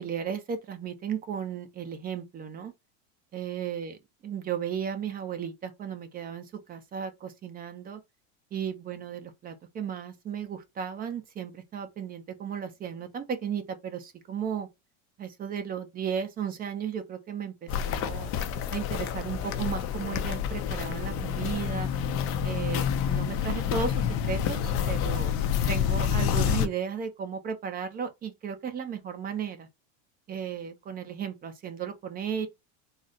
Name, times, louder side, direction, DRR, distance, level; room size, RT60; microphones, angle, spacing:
voice 1, 0.0-2.7 3.3-4.0 4.2-8.0 8.5-14.7 15.2-18.3 18.7-21.9 22.4-25.3 25.7-29.7 30.3-32.5, right 7 dB, 25° right, 0.6 m, -35 dB
Walk footsteps, 17.7-26.7, left 8 dB, 35° left, 0.5 m, -28 dB
4.0 x 2.1 x 3.7 m
supercardioid pair, 145°, 38 cm